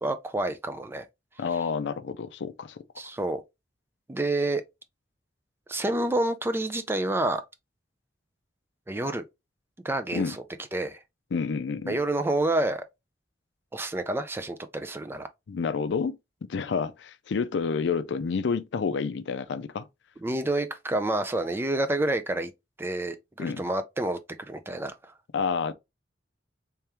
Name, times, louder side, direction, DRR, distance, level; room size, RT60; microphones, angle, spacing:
voice 1, 0.0-1.0 3.0-3.4 4.1-4.6 5.7-7.4 8.9-9.3 9.8-10.4 10.7-11.0 11.9-12.8 13.7-15.3 20.2-22.5 22.8-24.2 24.5-25.1, right 2 dB, 10° right, 0.4 m, -28 dB
voice 2, 1.4-2.8 10.1-10.4 11.3-12.0 15.5-16.2 16.5-19.9 23.4-23.7 25.3-25.7, left 5 dB, 65° left, 0.4 m, -29 dB
3.4 x 3.4 x 2.9 m
head